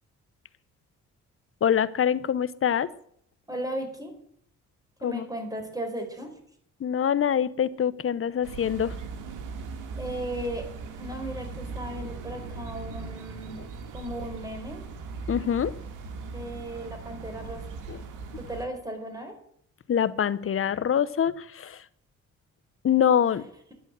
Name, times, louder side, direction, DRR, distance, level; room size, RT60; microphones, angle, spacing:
voice 1, 1.6-2.9 5.0-5.3 6.8-9.0 15.3-15.7 17.9-18.0 19.9-21.8 22.8-23.4, left 8 dB, 45° left, 15 dB, 1.0 m, -25 dB
voice 2, 3.5-4.1 5.0-6.3 9.9-10.7 11.0-13.6 13.9-14.8 16.2-17.6 18.4-19.3, right 1 dB, 10° right, 5 dB, 4.7 m, -36 dB
sound 1, 8.4-18.7, right 4 dB, 85° right, 2.5 m, -39 dB
11.5 x 10.5 x 7.7 m, 0.65 s
cardioid pair, 90°, 30 cm